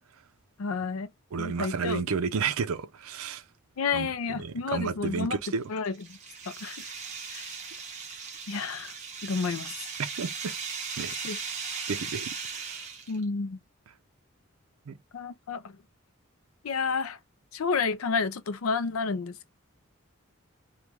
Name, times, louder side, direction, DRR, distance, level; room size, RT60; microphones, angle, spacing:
voice 1, 0.6-1.1 1.4-2.0 3.8-5.4 5.7-6.2 6.5-6.9 7.3-7.5 8.5-9.0 9.2-9.9 11.2-11.4 13.1-13.6 15.1-15.8 16.6-17.2 17.5-19.5, left 5 dB, 80° left, 0.5 m, -30 dB
voice 2, 1.3-3.4 3.9-5.7 10.2-10.6 11.0-11.1 11.9-12.8 14.9-15.0, right 5 dB, 85° right, 0.5 m, -32 dB
sound 1, 5.6-13.2, right 5 dB, 35° right, 0.9 m, -38 dB
3.0 x 2.3 x 3.4 m
head